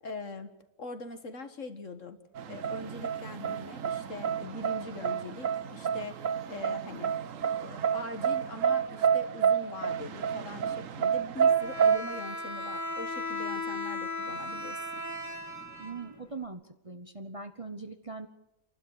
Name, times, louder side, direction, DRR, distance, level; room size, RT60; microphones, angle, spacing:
voice 1, 0.0-0.5 0.8-2.2 2.5-6.2 6.5-7.1 7.6-14.8, left 2 dB, 55° left, 8 dB, 2.0 m, -42 dB
sound 1, 2.4-12.0, right 7 dB, 65° right, 1.2 m, -29 dB
Bowed string instrument, 11.4-16.4, left 2 dB, 10° left, 2.2 m, -37 dB
voice 2, 15.8-18.3, right 4 dB, 25° right, 7 dB, 1.0 m, -41 dB
29.5 x 12.0 x 8.1 m, 0.87 s
omnidirectional pair, 1.6 m